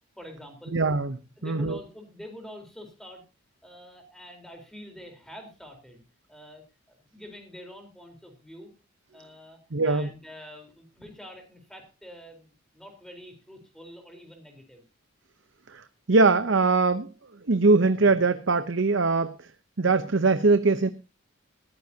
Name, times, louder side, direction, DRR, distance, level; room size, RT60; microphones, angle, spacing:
voice 1, 0.2-0.8 1.4-3.2 3.6-6.0 6.3-8.7 9.1-14.9, equal, ahead, 4 dB, 4.1 m, -46 dB
voice 2, 0.7-1.2 1.4-1.8 9.7-10.1 15.7-17.1 17.5-19.3 19.8-20.9, right 3 dB, 60° right, 11 dB, 0.8 m, -22 dB
19.0 x 14.5 x 2.8 m, 0.31 s
head